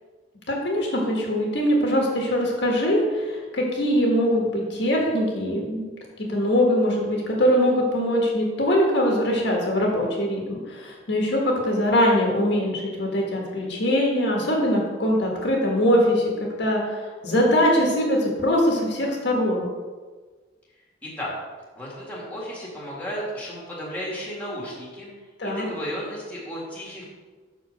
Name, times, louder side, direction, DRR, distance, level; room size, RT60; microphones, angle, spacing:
voice 1, 0.5-5.9 6.3-16.3 16.6-19.7 25.4-25.7, equal, 60° left, -2 dB, 1.5 m, -22 dB
voice 2, 21.8-25.1 25.4-27.0, equal, 10° left, -5 dB, 1.8 m, -34 dB
5.8 x 4.8 x 6.3 m, 1.4 s
head